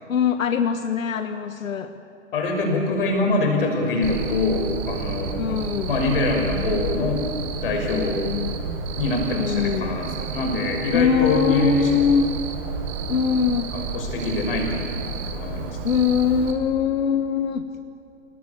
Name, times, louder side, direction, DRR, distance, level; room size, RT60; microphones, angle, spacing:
voice 1, 0.1-1.9 5.4-5.9 7.9-8.5 9.3-9.9 10.9-12.3 13.1-13.7 15.8-17.6, left 7 dB, 85° left, 8 dB, 1.5 m, -22 dB
voice 2, 2.3-5.6 5.9-7.3 7.6-8.2 9.0-12.1 13.7-15.8, left 2 dB, 45° left, 2 dB, 6.0 m, -24 dB
Cricket, 4.0-16.5, right 5 dB, 15° right, 1.2 m, -31 dB
28.5 x 18.5 x 8.7 m, 2.7 s
hypercardioid pair, 175°, 39 cm